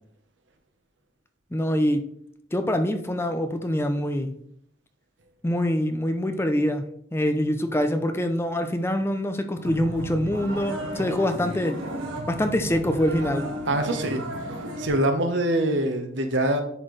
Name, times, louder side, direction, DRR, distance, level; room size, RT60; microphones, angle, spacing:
voice 1, 1.5-2.1 2.5-4.4 5.4-6.9 7.1-11.8 12.3-13.5, left 1 dB, 15° left, 0.5 m, -25 dB
sound 1, 9.6-14.9, right 1 dB, 85° right, 1.8 m, -33 dB
voice 2, 13.7-14.2 14.8-16.6, right 1 dB, 70° right, 1.0 m, -24 dB
10.0 x 4.4 x 3.2 m
head